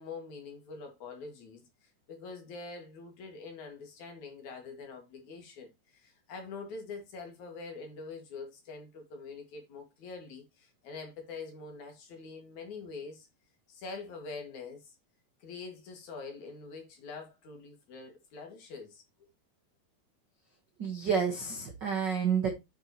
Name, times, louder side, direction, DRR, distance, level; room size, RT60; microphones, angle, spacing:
voice 1, 0.0-13.3 13.7-15.0 15.4-19.0, left 4 dB, 60° left, 3.2 m, -45 dB
voice 2, 20.8-22.5, right 6 dB, 55° right, 1.2 m, -29 dB
9.3 x 6.3 x 3.0 m
omnidirectional pair, 4.0 m